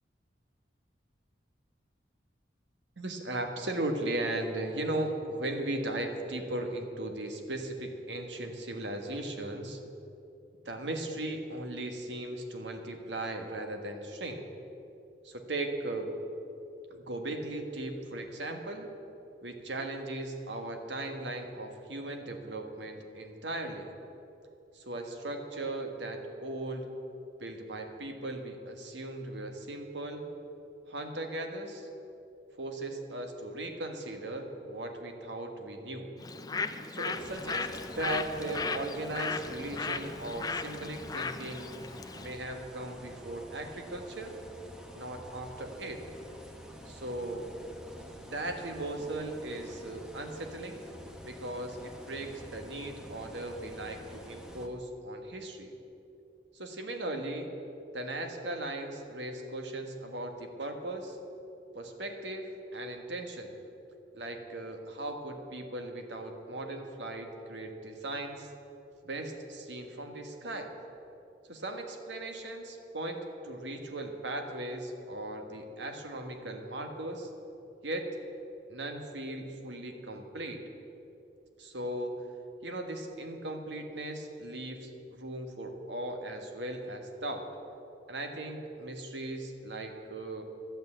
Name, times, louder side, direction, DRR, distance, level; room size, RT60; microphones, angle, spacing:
voice 1, 3.0-9.8 10.6-14.4 15.2-16.1 16.9-18.9 19.4-23.9 24.7-26.9 27.4-30.3 30.9-31.9 32.6-36.1 36.9-41.7 42.2-44.3 44.9-46.0 46.8-47.5 48.2-50.8 51.2-55.7 56.5-57.5 57.9-61.2 61.7-63.5 64.1-68.5 69.0-70.7 71.5-77.3 77.8-78.1 78.7-80.7 81.6-82.2 82.6-87.5 88.1-90.4, right 1 dB, 80° right, 4 dB, 1.5 m, -37 dB
Bird, 36.2-42.4, left 4 dB, 20° left, 0.4 m, -36 dB
sound 1, 37.1-54.7, equal, 5° right, 1.0 m, -49 dB
12.0 x 8.7 x 8.9 m, 2.8 s
head